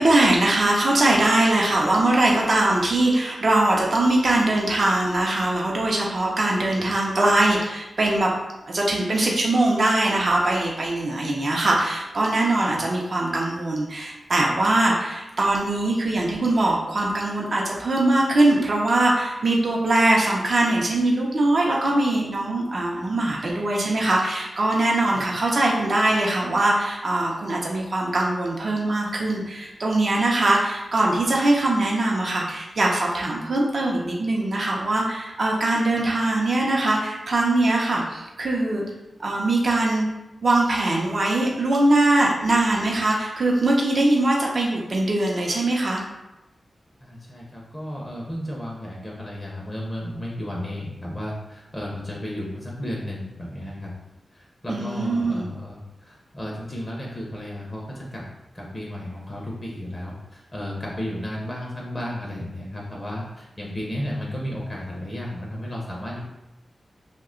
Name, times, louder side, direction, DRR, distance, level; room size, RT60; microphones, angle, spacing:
voice 1, 0.0-8.3 8.7-38.8 39.2-40.1 40.4-46.0 54.7-55.5, right 2 dB, 50° right, -2 dB, 0.5 m, -21 dB
voice 2, 47.0-53.9 54.3-58.2 58.5-66.2, left 1 dB, 20° left, -3 dB, 0.5 m, -33 dB
2.8 x 2.2 x 3.6 m, 0.97 s
wide cardioid pair, 95°, 0 cm